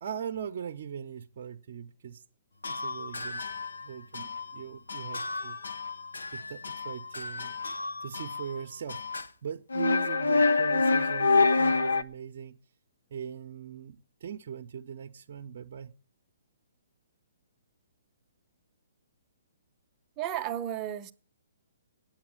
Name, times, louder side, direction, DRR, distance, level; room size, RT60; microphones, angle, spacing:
voice 1, 0.0-2.2 2.7-3.4 3.8-5.6 6.3-7.5 8.0-12.6 13.1-15.9, right 8 dB, 55° right, 0.8 m, -40 dB
sound 1, 2.6-3.9 4.1-4.6 4.9-8.6 8.9-9.3 9.7-12.0, left 3 dB, 85° left, 0.7 m, -28 dB
voice 2, 20.2-21.1, right 11 dB, 25° right, 0.8 m, -33 dB
8.9 x 8.7 x 8.8 m
hypercardioid pair, 140°, 0 cm